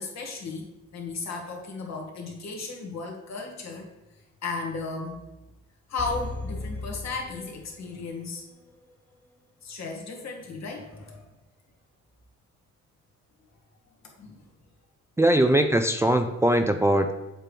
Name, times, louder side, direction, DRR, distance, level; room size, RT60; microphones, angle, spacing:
voice 1, 0.0-3.9 4.4-5.2 5.9-8.4 9.6-11.3 14.0-14.5, left 4 dB, 60° left, 1 dB, 1.8 m, -35 dB
sound 1, 6.0-8.2 8.5-8.6, left 2 dB, 5° left, 1.0 m, -36 dB
voice 2, 15.2-17.1, right 1 dB, 10° right, 6 dB, 0.4 m, -21 dB
7.5 x 3.4 x 5.1 m, 1.0 s
cardioid pair, 90°, 30 cm